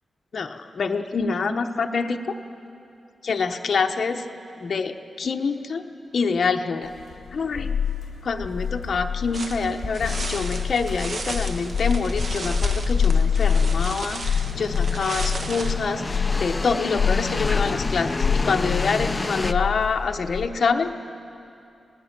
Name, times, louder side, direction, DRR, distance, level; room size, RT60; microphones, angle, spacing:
voice 1, 0.3-2.4 3.2-4.2 4.6-5.8 6.1-6.9 7.3-7.8 8.2-21.0, left 5 dB, 50° left, 5 dB, 0.9 m, -26 dB
sound 1, 7.0-20.5, left 6 dB, 80° left, 0.8 m, -26 dB
sound 2, 9.3-15.7, right 3 dB, 45° right, 1.2 m, -35 dB
sound 3, 9.5-19.5, left 2 dB, 20° left, 0.4 m, -31 dB
26.5 x 19.0 x 6.0 m, 2.7 s
wide cardioid pair, 155°, 0 cm